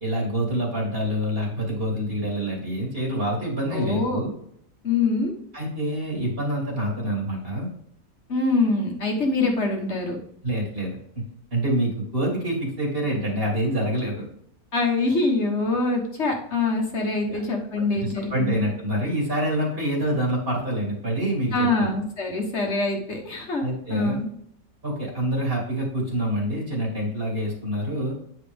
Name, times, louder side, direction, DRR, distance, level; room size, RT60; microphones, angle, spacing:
voice 1, 0.0-4.3 5.5-7.7 10.4-11.0 11.5-14.2 17.3-17.4 17.9-21.9 23.6-24.2 24.8-28.2, right 1 dB, 45° right, -2 dB, 2.7 m, -26 dB
voice 2, 3.7-4.2 4.8-5.3 8.3-10.2 14.7-18.6 21.5-23.6 23.9-24.3, left 3 dB, 55° left, 1 dB, 1.6 m, -24 dB
9.0 x 4.8 x 3.5 m, 0.70 s
omnidirectional pair, 1.4 m